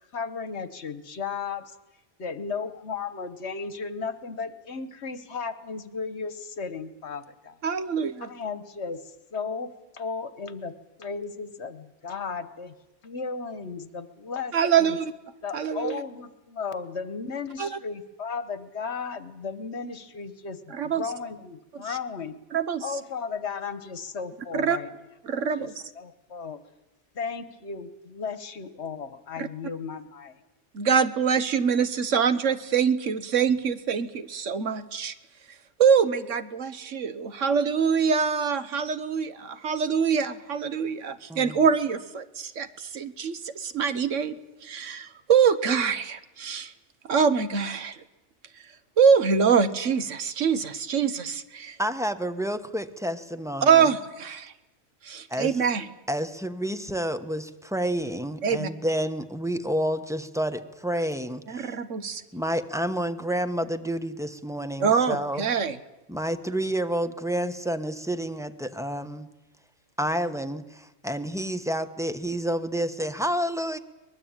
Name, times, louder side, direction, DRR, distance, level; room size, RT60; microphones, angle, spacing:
voice 1, 0.1-1.6 2.2-7.6 8.2-10.7 11.0-12.7 13.0-15.0 15.4-22.4 22.8-24.9 25.4-25.7 26.0-26.6 27.1-30.4, left 5 dB, 65° left, 13 dB, 1.5 m, -35 dB
voice 2, 7.6-8.3 14.5-15.1 15.5-16.0 17.6-17.7 20.7-21.1 21.9-22.0 22.5-22.8 24.5-24.8 25.3-25.7 29.4-29.5 30.7-35.1 35.8-46.7 47.1-48.0 49.0-51.8 53.6-54.5 55.0-55.9 58.4-58.7 61.5-62.2 64.8-65.8, right 6 dB, 85° right, 12 dB, 1.5 m, -24 dB
voice 3, 51.8-53.8 55.3-55.5 56.1-61.7 62.3-65.5 66.1-69.3 70.0-73.8, equal, 5° right, 9 dB, 1.1 m, -29 dB
23.0 x 20.5 x 8.9 m, 0.96 s
omnidirectional pair, 1.3 m